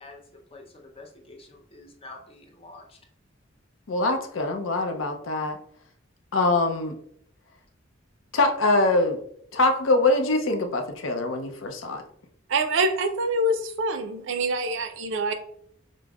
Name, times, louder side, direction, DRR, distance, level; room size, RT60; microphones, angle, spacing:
voice 1, 0.0-3.0, left 2 dB, 30° left, 2 dB, 0.6 m, -47 dB
voice 2, 3.9-5.6 6.3-6.9 8.3-9.2 9.5-12.0, left 2 dB, 80° left, 4 dB, 0.5 m, -23 dB
voice 3, 12.5-15.3, right 2 dB, 65° right, 7 dB, 0.4 m, -25 dB
5.1 x 2.0 x 2.3 m, 0.66 s
head